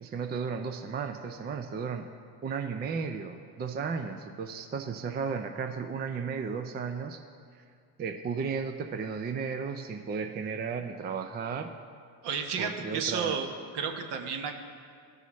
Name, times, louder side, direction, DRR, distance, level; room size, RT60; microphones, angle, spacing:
voice 1, 0.0-2.1 2.4-7.2 8.0-11.7 12.6-13.4, right 5 dB, 20° right, 6 dB, 0.4 m, -34 dB
voice 2, 12.2-13.5 13.7-14.5, right 6 dB, 60° right, 4 dB, 1.1 m, -32 dB
14.5 x 5.6 x 3.1 m, 2.2 s
hypercardioid pair, 80°, 46 cm